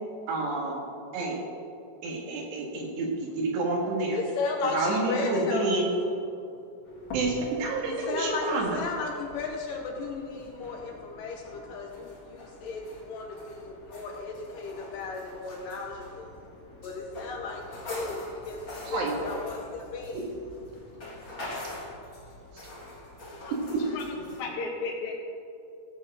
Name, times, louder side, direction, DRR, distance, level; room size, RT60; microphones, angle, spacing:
voice 1, 0.3-0.8 1.1-1.4 2.0-4.2 4.7-5.8 7.1-8.8 18.9-19.2 22.5-22.6, right 2 dB, 90° right, -1 dB, 4.1 m, -29 dB
voice 2, 4.1-5.7 7.8-20.3 20.7-21.1, left 4 dB, 70° left, 1 dB, 2.2 m, -35 dB
sound 1, 6.9-24.4, left 1 dB, 35° left, 2.1 m, -44 dB
voice 3, 23.9-25.1, left 4 dB, 55° left, -2 dB, 2.5 m, -35 dB
17.0 x 7.7 x 4.9 m, 2.6 s
omnidirectional pair, 4.7 m